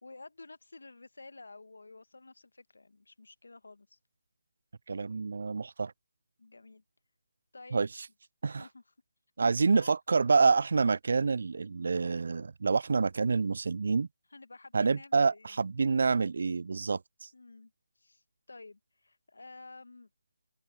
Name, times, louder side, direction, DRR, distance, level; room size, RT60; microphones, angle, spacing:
voice 1, 0.0-4.0 6.4-6.8 7.5-7.9 8.6-8.9 9.4-10.0 14.3-15.6 17.3-20.1, left 3 dB, 75° left, 1.6 m, -51 dB
voice 2, 4.9-5.9 7.7-7.9 8.4-8.6 9.4-14.1 14.7-17.3, right 4 dB, 60° right, 0.3 m, -27 dB
figure-of-eight pair, 155°, 0 cm